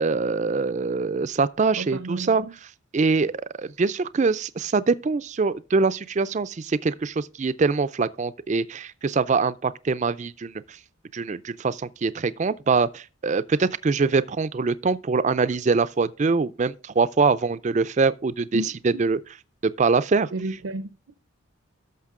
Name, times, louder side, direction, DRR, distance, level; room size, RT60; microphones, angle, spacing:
voice 1, 0.0-2.4 2.9-10.5 11.1-19.2 19.6-20.3, right 4 dB, 35° right, 0.4 m, -23 dB
voice 2, 1.7-2.5 18.5-19.1 20.3-20.9, right 2 dB, 75° right, 0.6 m, -32 dB
13.0 x 6.0 x 3.7 m
head